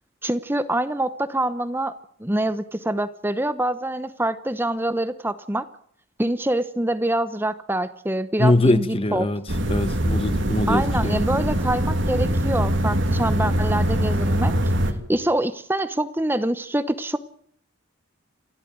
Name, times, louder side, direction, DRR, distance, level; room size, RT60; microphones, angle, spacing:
voice 1, 0.2-5.7 6.2-9.3 10.7-14.5 15.1-17.2, right 1 dB, 10° right, 0.8 m, -25 dB
voice 2, 8.4-9.4 9.7-11.2, left 1 dB, 25° left, 1.2 m, -22 dB
sound 1, 9.5-14.9, equal, 60° right, 2.8 m, -22 dB
28.5 x 12.5 x 9.3 m
head